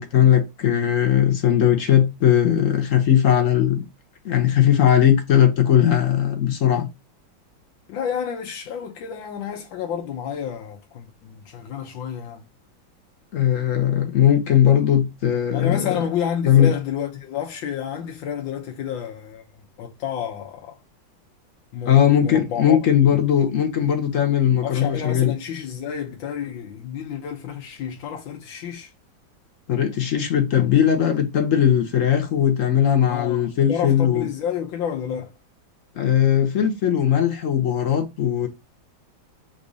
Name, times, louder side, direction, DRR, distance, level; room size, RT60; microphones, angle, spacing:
voice 1, 0.0-3.8 4.2-6.9 13.3-16.0 16.5-16.7 21.9-25.3 29.7-34.3 36.0-38.5, left 10 dB, 55° left, 0.9 m, -19 dB
voice 2, 7.9-12.4 15.5-19.4 19.8-20.8 21.7-22.8 24.6-28.9 33.1-35.3, left 8 dB, 80° left, 1.5 m, -30 dB
3.9 x 2.7 x 4.7 m
omnidirectional pair, 2.1 m